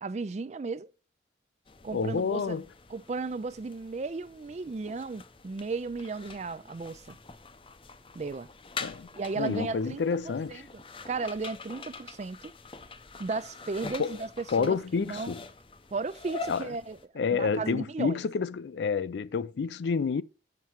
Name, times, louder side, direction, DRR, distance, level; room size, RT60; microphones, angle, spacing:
voice 1, 0.0-0.9 1.8-2.6 2.9-7.2 8.1-8.5 9.1-12.5 13.2-15.3 15.9-17.0 17.3-18.2, right 4 dB, 40° right, 0.4 m, -35 dB
sound 1, 1.7-17.1, left 4 dB, 30° left, 0.6 m, -45 dB
voice 2, 1.9-2.6 8.8-9.1 9.4-10.6 14.0-14.2 14.5-15.4 16.5-16.7 17.2-20.2, left 5 dB, 70° left, 0.4 m, -29 dB
7.4 x 5.7 x 4.5 m
head